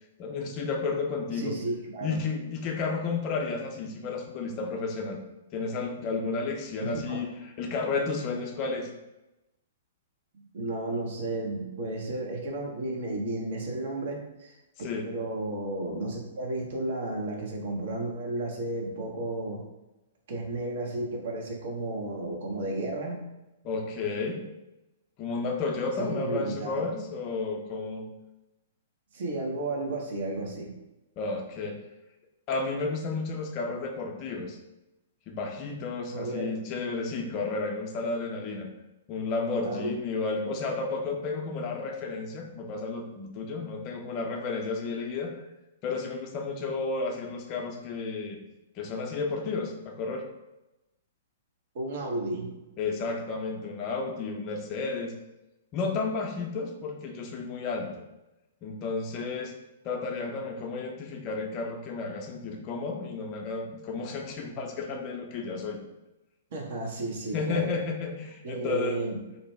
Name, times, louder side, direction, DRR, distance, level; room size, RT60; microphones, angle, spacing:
voice 1, 0.2-1.5 2.0-5.2 5.5-8.9 14.8-15.1 23.6-24.5 25.2-28.1 31.2-31.8 32.5-34.6 35.3-38.7 39.1-45.4 45.8-48.4 48.8-50.2 52.8-55.1 55.7-57.9 58.6-59.5 59.8-65.8 67.3-69.0, left 4 dB, 35° left, 2 dB, 0.5 m, -32 dB
voice 2, 1.4-2.2 6.9-7.2 10.5-14.5 15.0-19.6 20.3-23.2 26.0-26.9 29.1-30.7 36.1-36.5 39.6-39.9 51.7-52.5 66.5-67.7 68.4-69.2, right 2 dB, 55° right, 0 dB, 0.7 m, -33 dB
2.7 x 2.1 x 3.2 m, 0.97 s
figure-of-eight pair, 115°, 0 cm